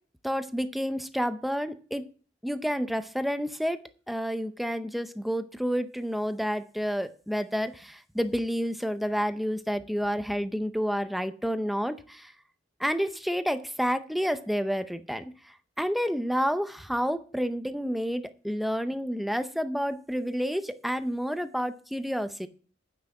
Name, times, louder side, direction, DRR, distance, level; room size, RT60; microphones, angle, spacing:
voice 1, 0.2-2.0 2.4-3.8 4.1-12.3 12.8-15.3 15.8-22.5, equal, ahead, 10 dB, 0.6 m, -29 dB
9.6 x 6.0 x 7.8 m, 0.41 s
head